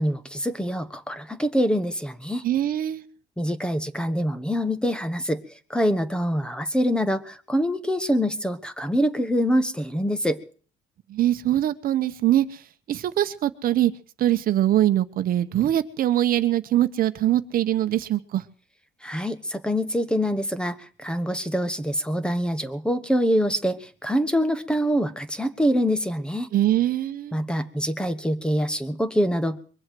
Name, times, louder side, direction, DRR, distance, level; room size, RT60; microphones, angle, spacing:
voice 1, 0.0-2.4 3.4-5.4 5.7-10.4 19.0-26.5 27.3-29.6, equal, 5° left, 12 dB, 1.3 m, -25 dB
voice 2, 2.4-3.0 11.1-12.5 12.9-13.9 14.2-18.4 26.5-27.4, right 12 dB, 60° right, 10 dB, 1.1 m, -22 dB
23.0 x 7.8 x 7.7 m, 0.44 s
cardioid pair, 110°, 17 cm